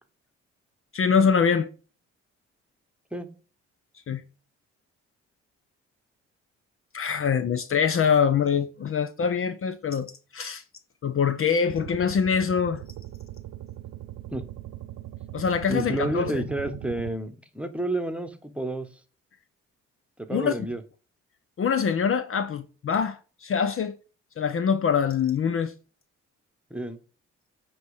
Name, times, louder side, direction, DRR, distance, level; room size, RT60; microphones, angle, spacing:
voice 1, 0.9-1.7 4.1-4.2 6.9-10.6 11.0-12.8 15.3-16.4 20.3-20.5 21.6-24.0 24.4-25.7, left 6 dB, 45° left, 0.6 m, -24 dB
sound 1, 11.7-17.2, right 14 dB, 70° right, 0.6 m, -40 dB
voice 2, 15.7-18.9 20.3-20.8 26.7-27.0, right 1 dB, 5° right, 1.1 m, -30 dB
9.1 x 3.1 x 4.8 m
supercardioid pair, 60°, 30 cm